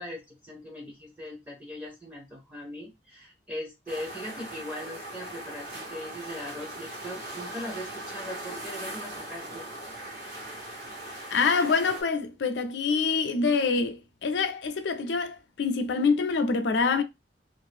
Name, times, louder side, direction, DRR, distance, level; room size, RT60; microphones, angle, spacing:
voice 1, 0.0-9.6, left 1 dB, 5° right, 0.7 m, -40 dB
sound 1, 3.9-12.0, right 1 dB, 50° right, 1.3 m, -40 dB
voice 2, 11.3-17.0, left 4 dB, 75° left, 0.4 m, -26 dB
2.5 x 2.4 x 3.3 m
head